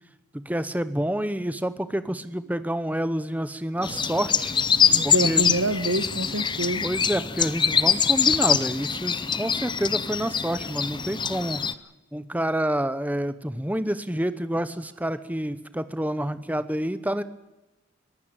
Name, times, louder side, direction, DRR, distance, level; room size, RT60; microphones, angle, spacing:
voice 1, 0.3-4.5 5.0-5.5 6.8-11.6 12.1-17.2, right 1 dB, 5° right, 13 dB, 0.9 m, -28 dB
sound 1, 3.8-11.7, left 7 dB, 20° left, 0.7 m, -24 dB
voice 2, 4.8-6.9, right 2 dB, 70° right, 14 dB, 1.4 m, -27 dB
22.5 x 15.5 x 8.8 m, 1.0 s
head